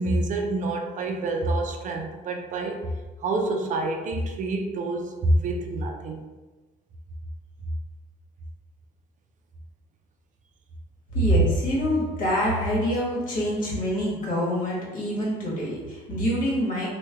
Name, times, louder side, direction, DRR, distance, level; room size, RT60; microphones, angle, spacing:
voice 1, 0.0-2.9 3.2-6.2, right 2 dB, 50° right, 3 dB, 0.4 m, -27 dB
voice 2, 11.1-16.9, equal, 50° left, -5 dB, 1.3 m, -25 dB
3.2 x 2.2 x 3.3 m, 1.2 s
cardioid pair, 110°, 17 cm